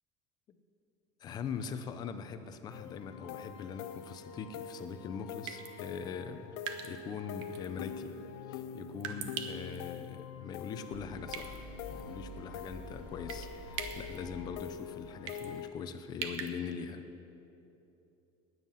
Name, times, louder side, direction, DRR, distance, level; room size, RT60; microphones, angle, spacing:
voice 1, 1.2-6.6 6.8-8.1 8.5-11.6 11.9-17.0, left 6 dB, 30° left, 9 dB, 0.7 m, -42 dB
sound 1, 2.7-15.7, left 7 dB, 80° left, 0.8 m, -45 dB
sound 2, 4.7-4.9 5.5-5.7 6.7-7.0 7.4-7.7 9.0-9.8 11.3-11.6 12.0-12.1 13.3-13.5 13.7-14.2 15.3-15.5 16.2-16.5, right 8 dB, 80° right, 1.3 m, -40 dB
sound 3, 10.9-14.7, equal, 10° right, 2.8 m, -48 dB
20.0 x 9.5 x 5.7 m, 3.0 s
cardioid pair, 175°, 14 cm